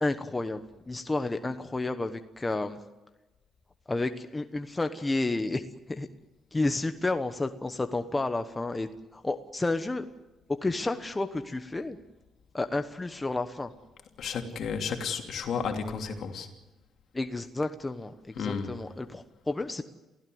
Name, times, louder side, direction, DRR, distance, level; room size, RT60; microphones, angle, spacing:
voice 1, 0.0-2.8 3.9-5.6 5.9-6.1 6.5-10.1 10.5-12.0 12.5-13.7 17.1-19.8, left 2 dB, 20° left, 8 dB, 1.1 m, -31 dB
voice 2, 14.2-16.5 18.4-18.8, left 6 dB, 65° left, 4 dB, 2.9 m, -32 dB
28.0 x 16.0 x 7.9 m, 1.1 s
cardioid pair, 90°, 0 cm